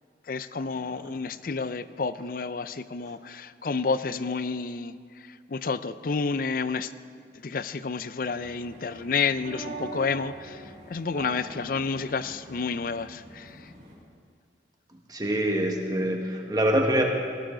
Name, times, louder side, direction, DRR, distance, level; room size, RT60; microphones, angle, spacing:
voice 1, 0.3-5.0 5.3-6.9 7.4-13.7, left 4 dB, 50° left, 14 dB, 0.5 m, -30 dB
sound 1, 8.3-13.9, right 2 dB, 55° right, 5.2 m, -43 dB
voice 2, 15.1-17.0, right 1 dB, 20° right, 1 dB, 1.5 m, -25 dB
19.0 x 17.5 x 3.9 m, 2.3 s
head